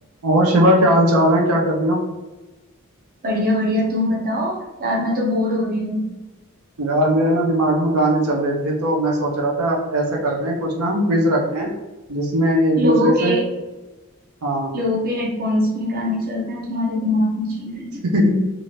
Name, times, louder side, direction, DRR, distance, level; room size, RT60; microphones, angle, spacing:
voice 1, 0.2-2.0 6.8-11.7 12.1-13.4 14.4-14.7 18.0-18.3, right 1 dB, 75° right, 0 dB, 0.6 m, -19 dB
voice 2, 3.2-6.1 12.8-13.5 14.7-18.0, left 1 dB, 40° right, -1 dB, 0.7 m, -22 dB
2.7 x 2.5 x 3.1 m, 1.1 s
head